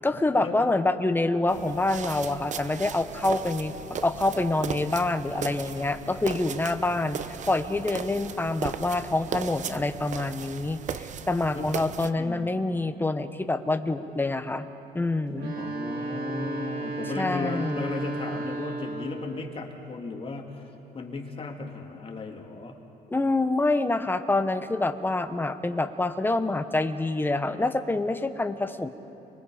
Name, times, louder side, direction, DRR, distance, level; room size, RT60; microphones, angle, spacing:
voice 1, 0.0-14.7 14.9-15.5 17.2-17.8 23.1-28.9, left 2 dB, 10° left, 9 dB, 1.1 m, -26 dB
sound 1, 1.5-12.1, right 7 dB, 45° right, 0.9 m, -37 dB
voice 2, 12.2-12.5 15.5-22.7, left 3 dB, 35° left, 1 dB, 2.9 m, -35 dB
sound 2, 15.3-19.3, right 3 dB, 80° right, 4.6 m, -34 dB
29.5 x 23.0 x 5.1 m, 2.8 s
cardioid pair, 110°, 17 cm